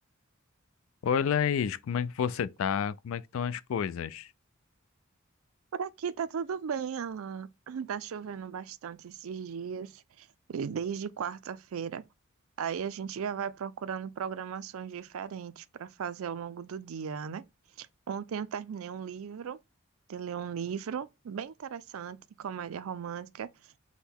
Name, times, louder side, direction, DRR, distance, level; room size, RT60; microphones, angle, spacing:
voice 1, 1.0-4.3, left 7 dB, 75° left, 0.4 m, -30 dB
voice 2, 5.7-12.0 12.6-17.4 17.8-19.6 20.1-23.5, right 7 dB, 85° right, 0.4 m, -36 dB
6.1 x 2.2 x 3.5 m
head